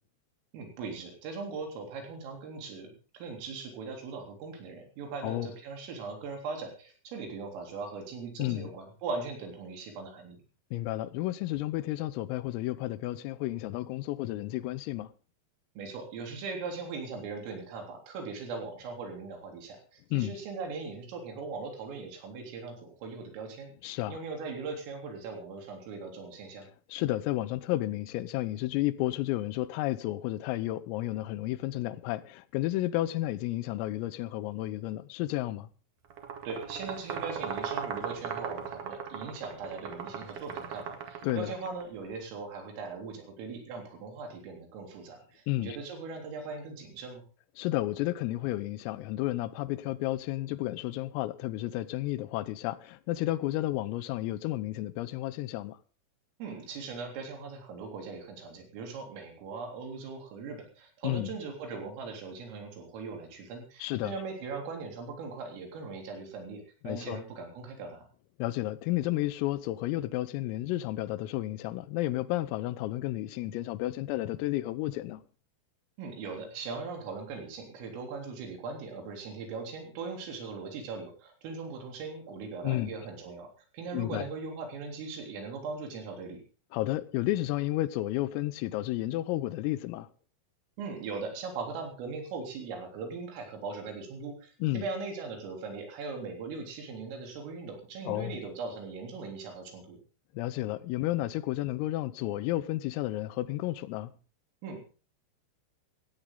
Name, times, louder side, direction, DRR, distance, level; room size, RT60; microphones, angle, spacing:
voice 1, 0.5-10.4 15.8-26.7 36.4-47.2 56.4-68.1 76.0-83.5 83.7-86.4 90.8-100.0 104.6-104.8, right 4 dB, 75° right, 6.0 m, -40 dB
voice 2, 8.4-8.8 10.7-15.1 20.1-20.4 23.8-24.2 26.9-35.7 41.2-41.5 45.5-45.8 47.6-55.8 61.0-61.3 63.8-64.1 66.8-67.2 68.4-75.2 82.6-82.9 83.9-84.3 86.7-90.1 94.6-94.9 98.1-98.4 100.4-104.1, left 16 dB, 85° left, 3.5 m, -32 dB
sound 1, 36.1-41.8, right 7 dB, 55° right, 2.6 m, -38 dB
17.5 x 15.5 x 3.9 m
omnidirectional pair, 5.9 m